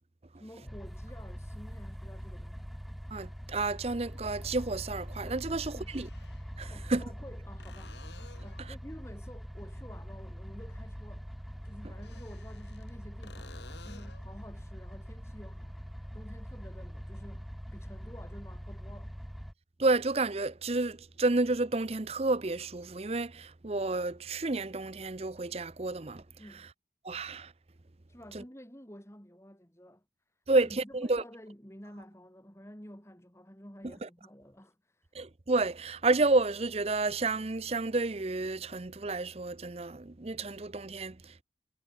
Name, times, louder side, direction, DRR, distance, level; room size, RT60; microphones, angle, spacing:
voice 1, 0.4-2.7 5.5-5.9 6.7-8.0 8.4-11.3 11.6-19.2 26.4-26.7 28.1-30.0 30.5-35.1, equal, 15° left, 4.1 m, -51 dB
sound 1, 0.7-19.5, equal, ahead, 1.7 m, -43 dB
voice 2, 3.1-6.1 6.6-7.0 8.6-8.7 19.8-26.2 26.5-26.7 27.0-27.5 28.3-28.4 30.5-31.2 33.8-34.1 35.1-41.4, right 2 dB, 35° right, 0.7 m, -30 dB
sound 2, 5.8-6.5 7.6-8.7 11.9-12.9 13.2-14.3 17.9-18.0, left 4 dB, 80° left, 3.6 m, -54 dB
head